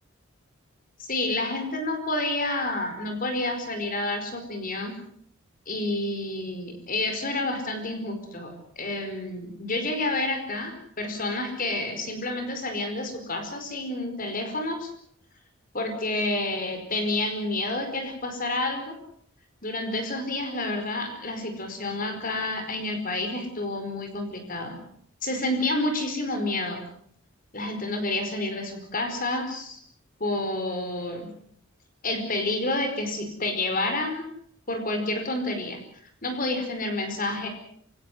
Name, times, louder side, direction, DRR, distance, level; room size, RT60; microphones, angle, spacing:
voice 1, 1.0-5.0 5.7-14.9 15.7-18.9 19.6-24.8 25.2-26.8 27.5-29.8 30.2-31.3 32.0-34.3 34.7-35.8 36.2-37.5, left 2 dB, 40° left, 6 dB, 4.9 m, -29 dB
27.0 x 17.5 x 8.0 m, 0.67 s
head